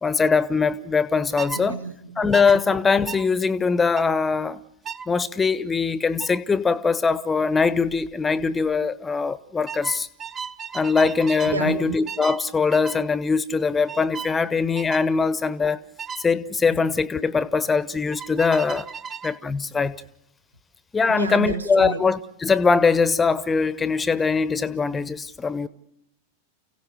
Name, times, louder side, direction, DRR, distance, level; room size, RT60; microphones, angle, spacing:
voice 1, 0.0-1.8 2.2-4.6 5.1-10.1 10.7-15.8 16.2-18.9 19.2-20.0 20.9-25.7, left 5 dB, 15° left, 0.9 m, -22 dB
sound 1, 1.4-1.6 2.3-2.6 3.1-3.2 3.9-4.1 4.8-5.1 6.2-6.4 7.9-8.1 8.4-8.7 9.7-11.6 12.1-12.4 12.7-13.0 13.9-14.3 14.7-15.1 16.0-16.2 18.1-19.4, right 6 dB, 25° right, 1.0 m, -35 dB
voice 2, 1.5-2.3 11.5-12.0 21.1-22.0, right 4 dB, 80° right, 1.7 m, -30 dB
30.0 x 16.5 x 6.6 m
figure-of-eight pair, 90°, 0 cm